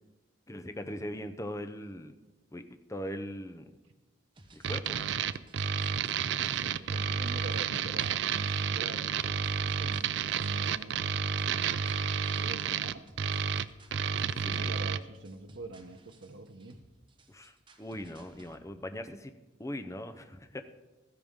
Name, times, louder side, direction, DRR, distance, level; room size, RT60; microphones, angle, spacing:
voice 1, 0.5-2.2 2.5-3.7 4.5-5.0 14.4-14.8 17.3-19.3 19.6-20.6, equal, 15° left, 8 dB, 0.7 m, -40 dB
sound 1, 4.4-18.6, right 1 dB, 25° right, 1.1 m, -58 dB
sound 2, 4.6-15.0, right 7 dB, 70° right, 0.4 m, -31 dB
voice 2, 6.5-9.4 9.8-11.3 12.4-13.0 14.2-16.8, right 2 dB, 90° right, 5 dB, 0.9 m, -46 dB
15.5 x 13.5 x 3.7 m, 1.2 s
head